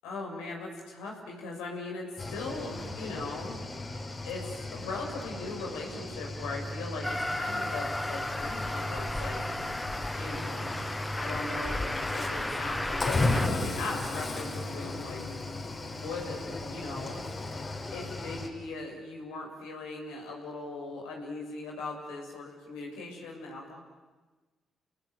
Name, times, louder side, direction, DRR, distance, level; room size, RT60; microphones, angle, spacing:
voice 1, 0.0-3.7 4.2-9.4 10.1-10.6 10.9-15.3 15.9-17.2 17.9-23.8, left 3 dB, 85° left, 0 dB, 6.9 m, -39 dB
Cricket / Waves surf, 2.2-18.5, left 2 dB, 40° left, 6.2 m, -36 dB
Train, 7.0-13.5, left 1 dB, 15° left, 1.5 m, -34 dB
29.5 x 19.5 x 9.5 m, 1.2 s
hypercardioid pair, 50°, 0 cm